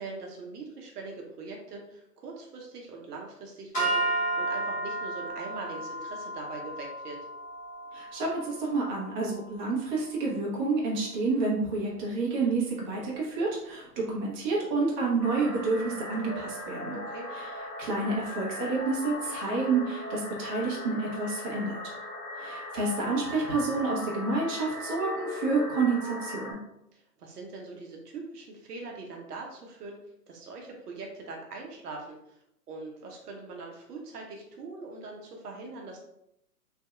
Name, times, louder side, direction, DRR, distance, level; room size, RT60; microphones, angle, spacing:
voice 1, 0.0-7.3 16.9-17.3 26.9-32.4 32.7-36.0, right 3 dB, 70° right, 0 dB, 0.8 m, -42 dB
sound 1, 3.7-10.1, right 2 dB, 15° left, 0.9 m, -33 dB
voice 2, 7.9-17.0 17.8-21.8 22.4-26.5, right 3 dB, 30° right, -3 dB, 1.0 m, -29 dB
sound 2, 15.2-26.5, left 2 dB, 60° left, 1.3 m, -38 dB
3.2 x 2.6 x 2.3 m, 0.79 s
hypercardioid pair, 125°, 49 cm